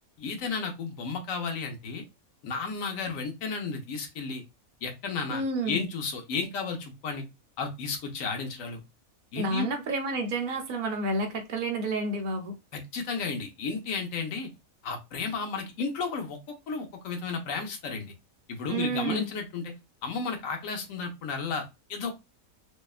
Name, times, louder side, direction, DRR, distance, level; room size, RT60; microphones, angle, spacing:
voice 1, 0.2-2.0 2.4-4.4 4.8-7.2 7.6-8.8 9.3-9.7 12.7-14.5 14.8-16.4 16.7-18.1 18.5-19.7 20.0-22.1, left 4 dB, 70° left, 1.1 m, -33 dB
voice 2, 5.3-5.8 9.4-12.6 18.7-19.3, right 2 dB, 55° right, 0.6 m, -30 dB
2.7 x 2.2 x 2.3 m
omnidirectional pair, 1.5 m